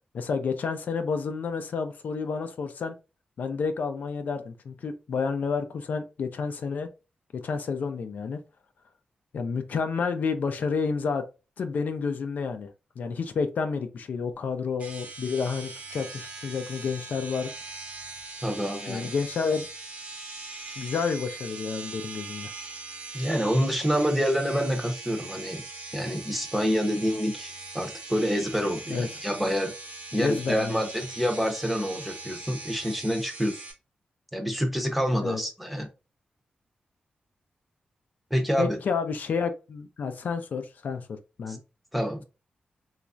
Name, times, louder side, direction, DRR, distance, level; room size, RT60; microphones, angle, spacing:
voice 1, 0.1-2.9 3.4-6.9 7.3-8.4 9.3-11.2 11.6-12.7 13.0-17.5 18.9-19.7 20.8-22.5 28.9-29.1 30.2-30.8 35.2-35.4 38.6-41.6, left 5 dB, 70° left, 7 dB, 0.4 m, -30 dB
sound 1, 14.8-33.7, right 3 dB, 55° right, 0.8 m, -41 dB
voice 2, 18.4-19.1 23.1-25.6 25.9-29.7 30.1-33.6 34.3-35.9 38.3-38.8 41.5-41.6 41.9-42.2, equal, ahead, 4 dB, 0.6 m, -27 dB
3.1 x 2.3 x 2.4 m, 0.30 s
cardioid pair, 95°, 3 cm